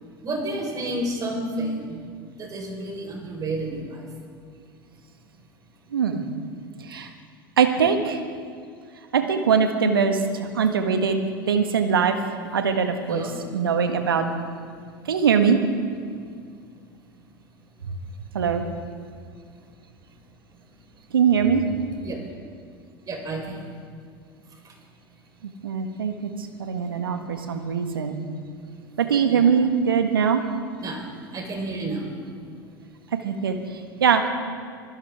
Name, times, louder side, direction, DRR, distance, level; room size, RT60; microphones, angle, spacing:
voice 1, 0.2-2.0 2.4-4.1 13.1-13.4 22.0-22.2 23.0-23.7 24.6-24.7 29.3-29.5 30.8-31.0 31.3-32.1, right 2 dB, 30° right, 1 dB, 4.4 m, -30 dB
voice 2, 5.9-6.2 6.8-7.1 7.6-8.2 9.1-11.2 11.5-12.1 12.5-14.2 15.1-15.6 18.3-18.6 21.1-21.6 25.6-26.1 26.6-28.2 29.0-30.4 33.2-33.6 34.0-34.3, right 6 dB, 75° right, 6 dB, 1.5 m, -21 dB
24.5 x 16.0 x 3.6 m, 2.1 s
figure-of-eight pair, 80°, 12 cm